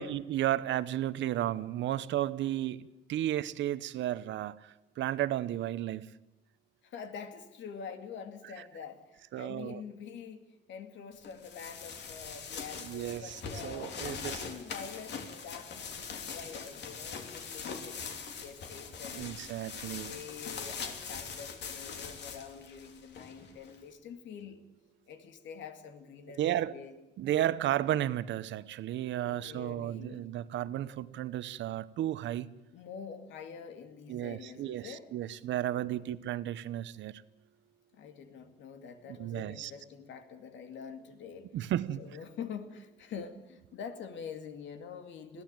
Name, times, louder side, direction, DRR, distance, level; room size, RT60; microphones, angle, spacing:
voice 1, 0.0-6.1 9.3-9.8 12.8-13.4 13.6-14.4 19.2-20.2 26.4-26.7 27.2-32.5 34.1-37.2 39.2-39.7 41.5-42.0, right 12 dB, 85° right, 16 dB, 0.9 m, -33 dB
voice 2, 6.8-10.4 10.7-14.0 14.2-19.4 19.9-24.6 25.1-27.0 29.2-30.3 32.7-35.1 35.8-36.1 37.9-41.5 42.0-45.4, left 7 dB, 90° left, 8 dB, 2.4 m, -46 dB
sound 1, 11.2-23.8, left 5 dB, 70° left, 3.1 m, -42 dB
21.5 x 15.5 x 9.0 m, 0.94 s
cardioid pair, 140°, 19 cm